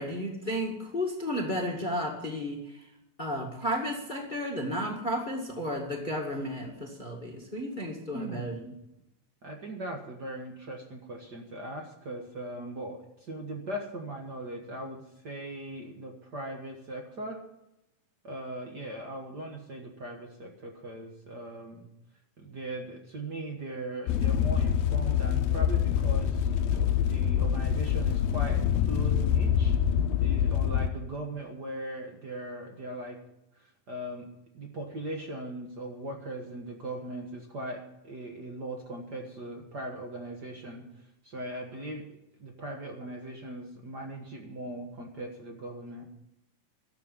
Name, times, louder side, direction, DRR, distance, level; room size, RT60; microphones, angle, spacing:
voice 1, 0.0-2.9 3.2-8.6, equal, 20° left, 1 dB, 1.2 m, -33 dB
voice 2, 8.1-8.8 9.4-17.4 18.2-21.9 22.4-33.2 33.5-42.1 42.4-46.1, right 1 dB, 50° right, 2 dB, 1.2 m, -39 dB
sound 1, 24.1-30.9, left 9 dB, 80° left, 2.5 m, -25 dB
13.0 x 7.8 x 9.6 m, 0.86 s
omnidirectional pair, 4.3 m